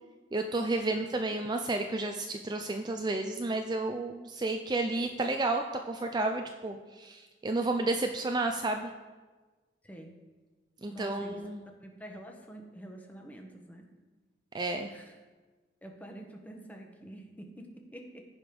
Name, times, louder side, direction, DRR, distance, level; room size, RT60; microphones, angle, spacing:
voice 1, 0.3-8.9 10.8-11.6 14.5-14.9, right 2 dB, 25° right, 5 dB, 0.4 m, -31 dB
voice 2, 0.9-1.4 9.8-10.1 10.9-11.4 11.8-13.9 14.9-15.1 15.8-18.3, right 1 dB, 10° left, 2 dB, 1.1 m, -47 dB
15.0 x 5.1 x 5.2 m, 1.3 s
head